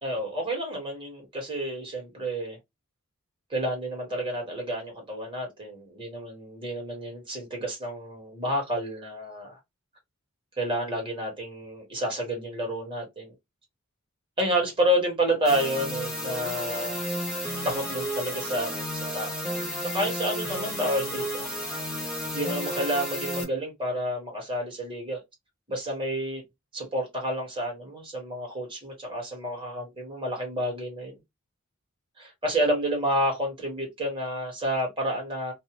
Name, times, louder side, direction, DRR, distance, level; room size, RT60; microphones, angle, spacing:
voice 1, 0.0-2.6 3.5-9.6 10.6-13.3 14.4-17.1 17.6-19.5 19.8-21.4 22.3-25.2 25.7-26.4 26.7-31.1 32.2-35.5, equal, 25° right, 1.4 m, -30 dB
sound 1, 15.4-23.4, equal, ahead, 1.0 m, -32 dB
2.7 x 2.2 x 2.9 m
head